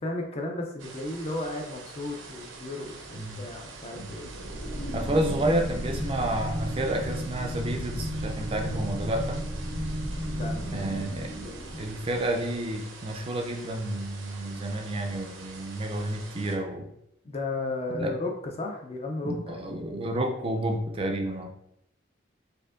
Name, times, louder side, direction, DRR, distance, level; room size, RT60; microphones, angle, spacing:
voice 1, 0.0-4.3 10.2-11.6 17.2-19.9, left 2 dB, 30° left, 2 dB, 0.5 m, -35 dB
sound 1, 0.8-16.6, right 3 dB, 80° right, 0.6 m, -45 dB
sound 2, 4.3-12.6, equal, 70° left, 1.0 m, -34 dB
voice 2, 4.9-9.4 10.7-16.9 17.9-18.2 19.2-21.5, right 1 dB, 30° right, 3 dB, 0.4 m, -30 dB
4.3 x 2.6 x 2.5 m, 0.77 s
head